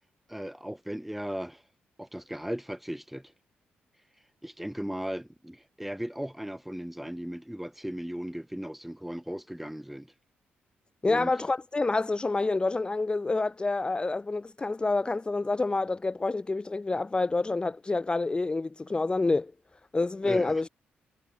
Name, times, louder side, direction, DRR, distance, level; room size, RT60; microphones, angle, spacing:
voice 1, 0.3-1.6 2.0-3.3 4.4-10.1 11.0-11.3 20.2-20.7, equal, 5° right, 1.2 m, -37 dB
voice 2, 11.0-19.5 19.9-20.7, left 3 dB, 25° left, 0.8 m, -28 dB
cardioid pair, 65°, 4 cm